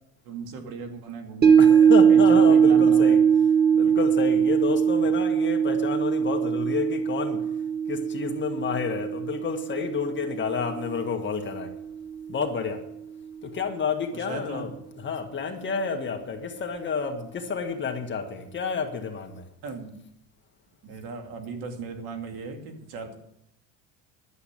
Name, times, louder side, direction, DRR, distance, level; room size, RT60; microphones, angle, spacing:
voice 1, 0.2-3.2 14.1-14.7 19.6-20.0 20.8-23.1, right 4 dB, 70° right, 5 dB, 2.5 m, -37 dB
sound 1, 1.4-11.8 12.2-12.3, right 7 dB, 25° right, 1.0 m, -21 dB
voice 2, 1.6-3.2 3.7-7.4 7.9-11.7 12.3-12.8 13.4-14.7 15.0-19.4, left 6 dB, 30° left, 4 dB, 1.8 m, -30 dB
11.5 x 8.0 x 8.9 m, 0.78 s
cardioid pair, 125°, 38 cm